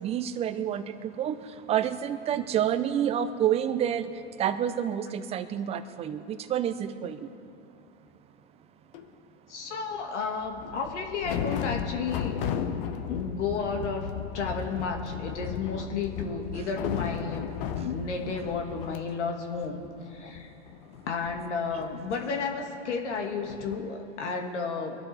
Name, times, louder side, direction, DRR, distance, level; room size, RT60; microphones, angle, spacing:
voice 1, 0.0-1.4 1.7-7.3, right 9 dB, 20° right, 12 dB, 0.5 m, -29 dB
sound 1, 8.9-9.1 10.4-19.0 19.3-19.4 19.6-22.9 23.4-23.8, left 8 dB, 50° left, 1.0 m, -35 dB
voice 2, 9.5-12.5 13.1-17.5 17.8-19.8 20.1-20.5 21.1-25.0, left 5 dB, 75° left, 3 dB, 2.0 m, -32 dB
23.0 x 12.0 x 3.4 m, 2.6 s
hypercardioid pair, 115°, 35 cm